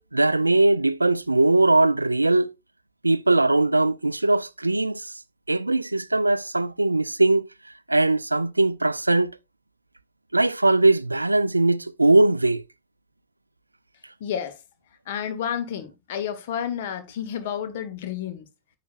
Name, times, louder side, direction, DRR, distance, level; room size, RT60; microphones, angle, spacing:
voice 1, 0.0-2.5 3.0-5.1 5.5-7.5 7.9-9.3 10.3-12.6, right 2 dB, 85° right, 0.3 m, -20 dB
voice 2, 14.2-14.6 15.1-18.5, left 9 dB, 55° left, 1.5 m, -30 dB
9.7 x 7.5 x 2.5 m
figure-of-eight pair, 90°, 0 cm